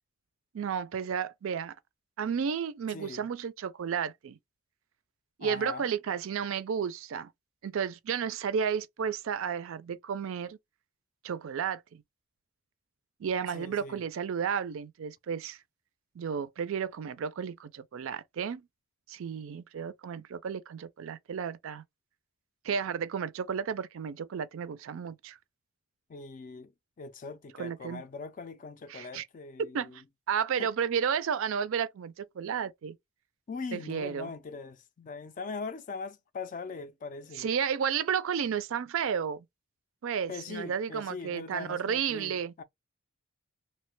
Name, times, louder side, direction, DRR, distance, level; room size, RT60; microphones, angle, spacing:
voice 1, 0.5-1.7 2.2-4.4 5.4-7.3 7.6-10.6 11.2-12.0 13.2-15.6 16.2-18.7 19.1-21.8 22.6-25.4 27.6-28.0 28.9-29.3 29.7-30.0 30.3-33.0 33.7-34.3 37.4-39.4 40.0-42.5, right 7 dB, 65° right, 0.4 m, -32 dB
voice 2, 2.9-3.3 5.4-5.9 13.5-14.0 26.1-26.7 27.0-30.0 30.6-30.7 33.5-37.5 40.3-42.6, left 4 dB, 35° left, 0.3 m, -41 dB
2.8 x 2.1 x 3.1 m
head